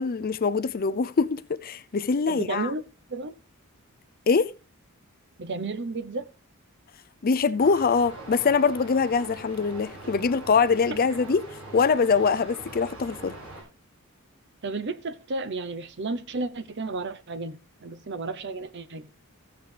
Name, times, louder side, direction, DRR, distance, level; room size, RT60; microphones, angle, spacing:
voice 1, 0.0-2.7 4.3-4.5 7.2-11.5 11.7-13.3, left 5 dB, 45° left, 0.5 m, -23 dB
voice 2, 2.3-2.8 3.1-3.3 5.4-6.3 14.6-19.1, right 3 dB, 55° right, 0.8 m, -32 dB
sound 1, 7.6-13.6, right 1 dB, 75° right, 6.7 m, -42 dB
14.5 x 7.9 x 3.3 m
head